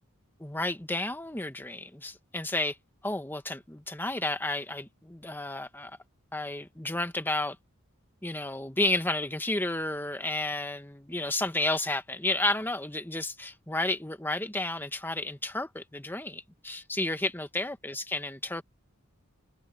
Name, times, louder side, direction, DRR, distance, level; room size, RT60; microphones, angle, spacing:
voice 1, 0.4-2.8 3.0-6.0 6.3-7.6 8.2-18.6, left 2 dB, 10° left, 1.3 m, -32 dB
head